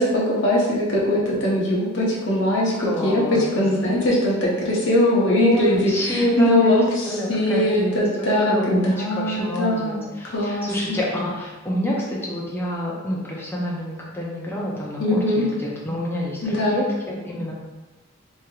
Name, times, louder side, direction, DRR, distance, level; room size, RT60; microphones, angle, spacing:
voice 1, 0.0-3.2 3.5-6.8 7.3-10.0 10.3-11.0 15.0-15.4 16.4-16.8, left 1 dB, 55° left, -5 dB, 0.8 m, -21 dB
voice 2, 2.8-3.9 5.2-6.7 7.1-17.5, equal, 10° left, -4 dB, 0.5 m, -27 dB
3.1 x 2.8 x 2.3 m, 1.2 s
head